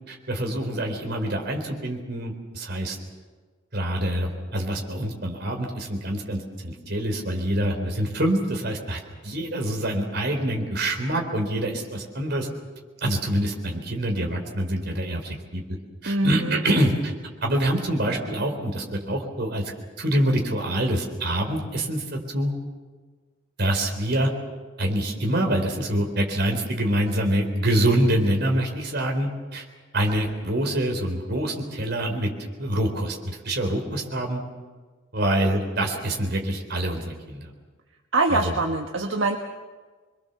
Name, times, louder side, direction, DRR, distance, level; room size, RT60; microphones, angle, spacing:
voice 1, 0.1-3.0 3.7-12.5 13.0-15.6 16.0-17.1 17.4-19.7 20.0-22.5 23.6-24.3 24.8-29.6 29.9-34.4 35.1-37.5 38.3-38.6, right 1 dB, 55° right, 3 dB, 4.0 m, -25 dB
voice 2, 16.1-16.6 38.1-39.4, right 2 dB, 75° right, 3 dB, 1.4 m, -23 dB
26.5 x 22.0 x 7.0 m, 1.4 s
head